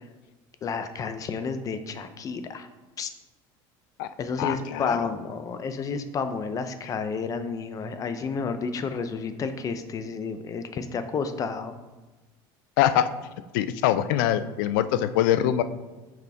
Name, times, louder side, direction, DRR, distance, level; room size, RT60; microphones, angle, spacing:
voice 1, 0.6-2.7 3.0-3.1 4.2-11.7, left 5 dB, 30° left, 9 dB, 0.6 m, -31 dB
voice 2, 4.4-5.1 12.8-13.1 13.5-15.6, left 11 dB, 80° left, 13 dB, 0.4 m, -23 dB
6.0 x 5.2 x 3.5 m, 1.2 s
supercardioid pair, 120°, 11 cm